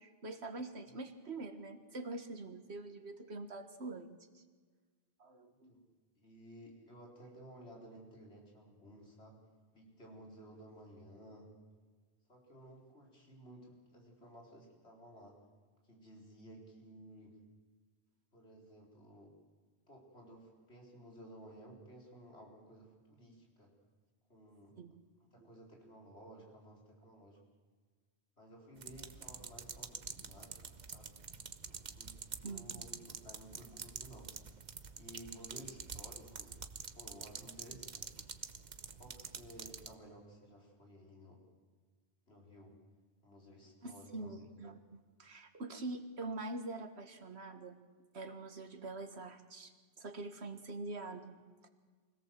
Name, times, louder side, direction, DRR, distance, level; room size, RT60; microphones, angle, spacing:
voice 1, 0.0-4.4 5.2-5.8 6.7-6.9 24.8-25.0 25.4-25.5 32.4-33.1 35.5-35.6 43.8-47.8 48.1-49.7 50.0-51.7, right 2 dB, 75° right, 7 dB, 1.9 m, -45 dB
voice 2, 6.2-9.4 9.7-11.5 12.3-15.4 15.9-17.4 18.3-19.3 19.9-23.7 24.3-24.8 25.3-27.4 28.4-31.2 31.6-34.3 34.9-36.6 36.9-38.2 39.0-41.4 42.3-42.8 43.2-44.6, equal, 75° left, -1 dB, 4.6 m, -55 dB
sound 1, 28.8-39.9, right 5 dB, 45° right, 1.0 m, -47 dB
24.5 x 17.5 x 7.7 m, 1.5 s
omnidirectional pair, 1.1 m